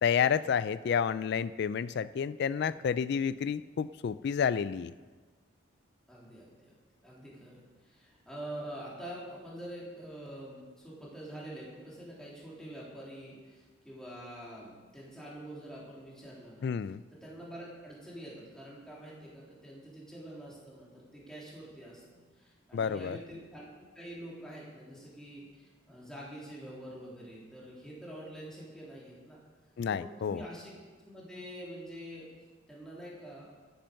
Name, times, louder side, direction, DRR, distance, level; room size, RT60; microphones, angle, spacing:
voice 1, 0.0-4.9 16.6-17.0 22.7-23.2 29.8-30.4, left 7 dB, 55° left, 16 dB, 0.3 m, -30 dB
voice 2, 6.1-6.7 7.0-16.7 17.2-22.0 22.3-23.7 24.0-29.4 29.9-30.7 31.0-32.3 32.7-33.5, right 1 dB, 5° left, -6 dB, 3.4 m, -46 dB
13.0 x 8.9 x 6.4 m, 1.4 s
head